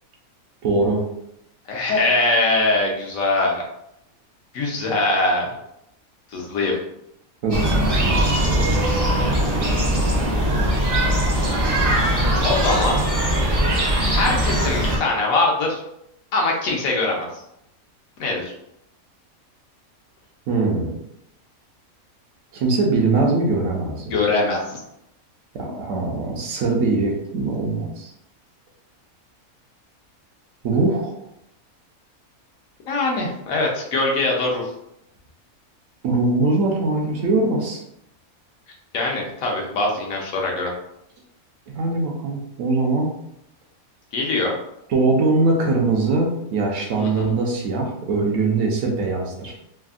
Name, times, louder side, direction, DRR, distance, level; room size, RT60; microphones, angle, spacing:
voice 1, 0.6-1.1 7.4-7.7 8.0-8.3 20.5-21.0 22.5-24.2 25.5-28.1 30.6-31.2 36.0-37.8 41.7-43.1 44.9-49.5, right 3 dB, 70° right, 0 dB, 0.9 m, -21 dB
voice 2, 1.7-3.6 4.5-5.5 6.3-6.8 11.2-11.3 12.4-13.0 13.7-13.8 14.0-15.8 16.3-17.4 18.2-18.5 24.1-24.8 32.9-34.7 38.9-40.7 44.1-44.5 47.0-47.3, left 2 dB, 75° left, -1 dB, 1.0 m, -22 dB
Park Ambient Berlin Pankow, 7.5-15.0, right 1 dB, 45° right, 0.4 m, -20 dB
3.3 x 2.0 x 2.3 m, 0.79 s
omnidirectional pair, 1.5 m